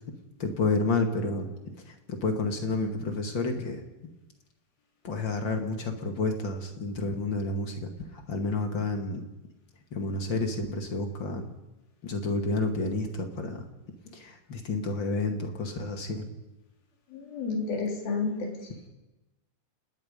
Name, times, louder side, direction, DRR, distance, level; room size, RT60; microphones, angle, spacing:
voice 1, 0.4-1.5 1.8-3.8 5.0-9.2 9.9-11.6 12.0-13.6 14.1-16.2, left 3 dB, 35° left, 4 dB, 2.3 m, -30 dB
voice 2, 17.1-18.6, left 4 dB, 70° left, 1 dB, 5.1 m, -30 dB
29.5 x 19.5 x 5.4 m, 1.0 s
omnidirectional pair, 4.3 m